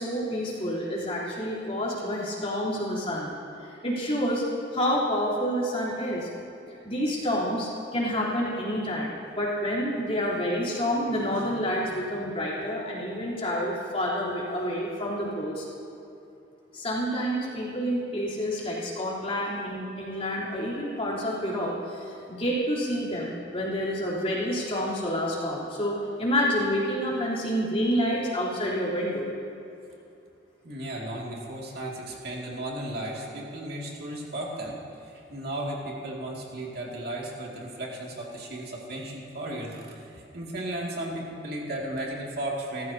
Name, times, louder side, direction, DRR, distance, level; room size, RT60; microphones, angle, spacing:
voice 1, 0.0-3.3 3.7-4.4 4.7-6.3 6.7-15.7 16.7-29.3, equal, 30° left, -6 dB, 3.8 m, -28 dB
voice 2, 30.6-34.7 35.0-42.9, right 1 dB, 55° right, -3 dB, 2.5 m, -35 dB
29.0 x 14.5 x 2.9 m, 2.7 s
head